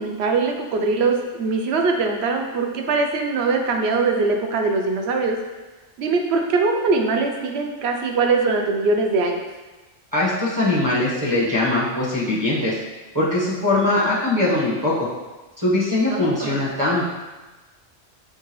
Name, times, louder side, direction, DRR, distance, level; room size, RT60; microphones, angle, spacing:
voice 1, 0.0-5.4 6.0-9.4 16.1-16.6, right 3 dB, 65° right, 3 dB, 0.8 m, -22 dB
voice 2, 10.1-12.8 13.1-15.1 15.6-17.0, left 2 dB, 15° right, -7 dB, 0.9 m, -21 dB
5.9 x 2.8 x 3.0 m, 1.2 s
omnidirectional pair, 1.3 m